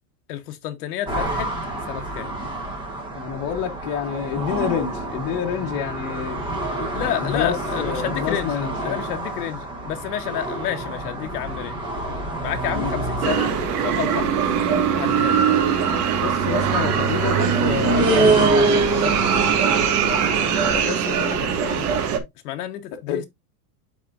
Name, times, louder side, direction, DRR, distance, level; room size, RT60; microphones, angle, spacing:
voice 1, 0.3-1.5 1.9-2.3 6.9-11.9 12.4-13.6 13.8-14.3 14.9-15.4 20.7-21.9 22.4-23.3, left 11 dB, 70° left, 1.2 m, -30 dB
sound 1, 1.1-20.7, right 2 dB, 10° right, 1.2 m, -27 dB
voice 2, 3.1-6.4 7.1-9.0 12.7-12.9 16.2-19.2 23.1-23.2, left 8 dB, 30° left, 1.2 m, -28 dB
sound 2, 13.2-22.2, right 7 dB, 65° right, 1.8 m, -22 dB
12.0 x 4.2 x 2.5 m
supercardioid pair, 175°, 48 cm